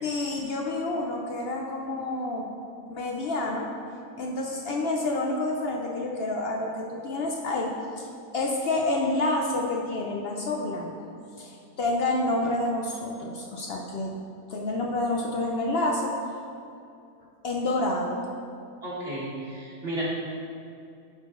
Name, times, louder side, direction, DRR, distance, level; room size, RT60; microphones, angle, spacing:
voice 1, 0.0-2.5 2.9-3.7 4.2-8.1 8.3-10.9 11.4-14.1 14.5-16.1 17.4-18.2, left 2 dB, 80° left, 0 dB, 0.5 m, -28 dB
voice 2, 18.8-20.0, right 1 dB, 40° right, -8 dB, 1.6 m, -33 dB
10.0 x 3.8 x 3.7 m, 2.6 s
omnidirectional pair, 1.7 m